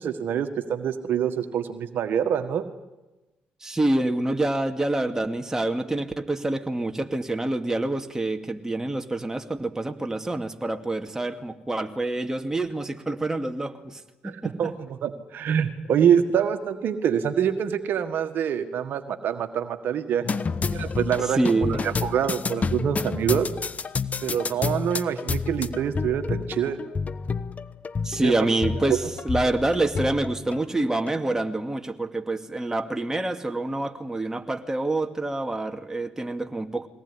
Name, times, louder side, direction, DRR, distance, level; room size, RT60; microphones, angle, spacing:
voice 1, 0.0-2.6 14.2-20.2 20.7-21.4 21.7-23.5 24.2-26.8 28.2-28.3 28.8-29.0, right 8 dB, 65° right, 7 dB, 1.6 m, -25 dB
voice 2, 3.6-14.7 21.4-21.8 28.0-29.0 29.2-36.9, right 2 dB, 15° right, 4 dB, 2.4 m, -27 dB
sound 1, 20.2-31.2, left 5 dB, 40° left, 1.1 m, -30 dB
22.5 x 18.0 x 9.9 m, 1.1 s
hypercardioid pair, 50°, 4 cm